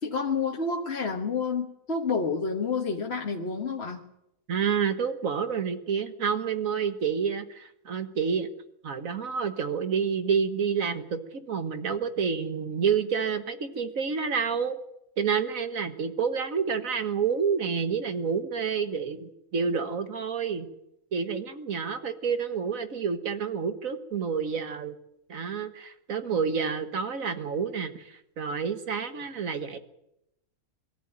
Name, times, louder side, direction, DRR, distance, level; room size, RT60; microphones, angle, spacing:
voice 1, 0.0-4.0, left 4 dB, 45° left, 1 dB, 1.6 m, -29 dB
voice 2, 4.5-8.5 8.8-14.8 15.2-20.7 21.1-25.0 25.3-29.8, right 6 dB, 70° right, 8 dB, 1.8 m, -29 dB
22.5 x 13.5 x 8.9 m, 0.84 s
omnidirectional pair, 1.5 m